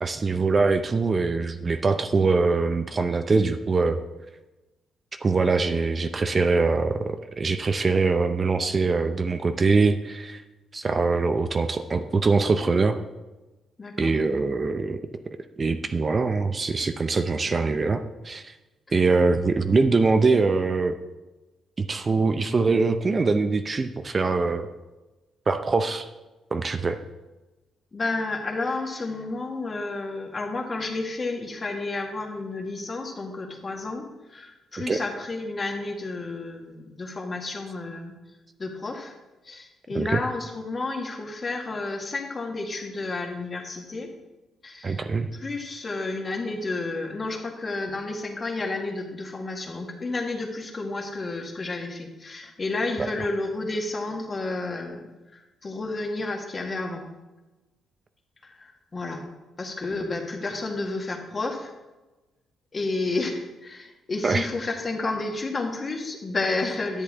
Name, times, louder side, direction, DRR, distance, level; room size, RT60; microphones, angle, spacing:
voice 1, 0.0-4.0 5.2-10.4 10.7-13.0 14.0-15.0 15.6-18.5 18.9-21.0 21.8-24.7 25.5-26.1 26.5-27.0 34.9-35.0 39.9-40.2 44.8-45.3 53.0-53.1 64.2-64.5, right 4 dB, 35° right, 8 dB, 0.5 m, -23 dB
voice 2, 13.8-14.1 27.9-38.1 38.6-39.2 39.4-44.1 44.6-45.0 45.3-57.1 58.4-59.2 59.6-61.7 62.7-67.0, left 3 dB, 35° left, 2 dB, 1.5 m, -31 dB
10.5 x 7.9 x 3.6 m, 1.1 s
cardioid pair, 90°, 0 cm